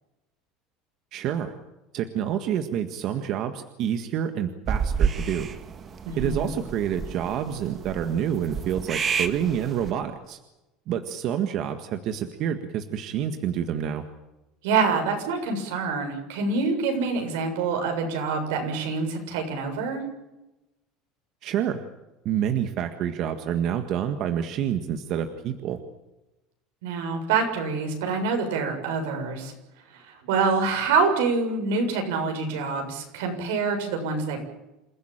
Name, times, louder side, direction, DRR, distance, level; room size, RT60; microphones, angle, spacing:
voice 1, 1.1-1.5 1.9-5.5 6.2-10.4 10.9-14.0 21.4-21.8 22.2-25.8, right 9 dB, 45° right, 7 dB, 1.7 m, -28 dB
sound 1, 4.7-9.9, right 6 dB, 25° right, 1.7 m, -30 dB
voice 2, 6.1-6.5 14.6-20.0 26.8-29.5 30.1-34.4, right 4 dB, 90° right, 4 dB, 7.2 m, -26 dB
28.0 x 15.5 x 9.0 m, 0.97 s
cardioid pair, 150°, 0 cm